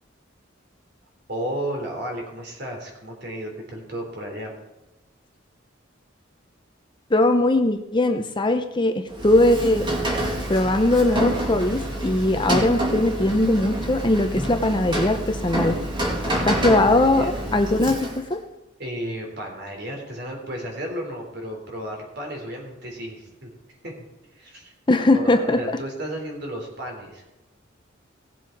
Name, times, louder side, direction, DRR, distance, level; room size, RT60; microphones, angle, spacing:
voice 1, 1.3-4.5 16.1-17.4 18.8-23.5 23.8-23.9 24.3-24.7 25.1-27.2, right 1 dB, 55° right, 1 dB, 3.8 m, -33 dB
voice 2, 7.1-9.9 10.5-15.8 16.4-18.4 24.9-25.6, left 1 dB, 25° left, 7 dB, 0.7 m, -20 dB
Rain, 9.1-18.4, right 1 dB, 25° right, 2.5 m, -27 dB
17.5 x 7.5 x 4.6 m, 0.99 s
head